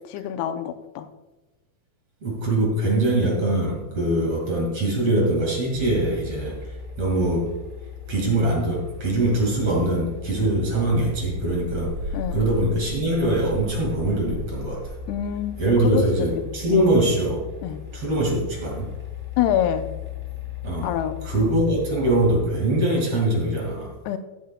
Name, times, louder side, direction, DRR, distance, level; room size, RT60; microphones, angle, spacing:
voice 1, 0.1-1.1 12.1-12.4 15.1-16.8 17.6-17.8 19.4-19.9 20.8-21.2 24.1-24.2, left 10 dB, 85° left, 8 dB, 2.6 m, -26 dB
voice 2, 2.2-6.6 7.0-7.6 8.1-12.0 12.3-14.9 15.6-17.5 17.9-18.9 20.6-20.9 21.2-23.9, right 1 dB, 45° right, -2 dB, 2.6 m, -22 dB
sound 1, 5.7-22.4, left 5 dB, 5° right, 2.0 m, -36 dB
15.0 x 9.4 x 2.2 m, 1.1 s
omnidirectional pair, 4.6 m